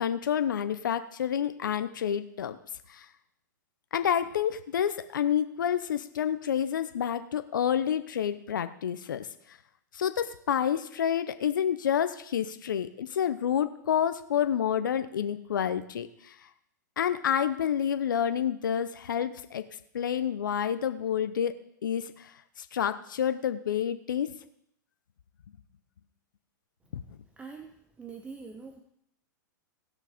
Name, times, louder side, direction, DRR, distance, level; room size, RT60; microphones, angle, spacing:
voice 1, 0.0-2.6 2.9-3.1 3.9-9.3 9.9-16.4 17.0-19.6 19.9-21.5 21.8-24.3, left 9 dB, 80° left, 10 dB, 0.8 m, -29 dB
voice 2, 27.4-28.8, right 5 dB, 15° right, 4 dB, 1.0 m, -44 dB
17.0 x 6.5 x 5.1 m, 0.72 s
hypercardioid pair, 125°, 10 cm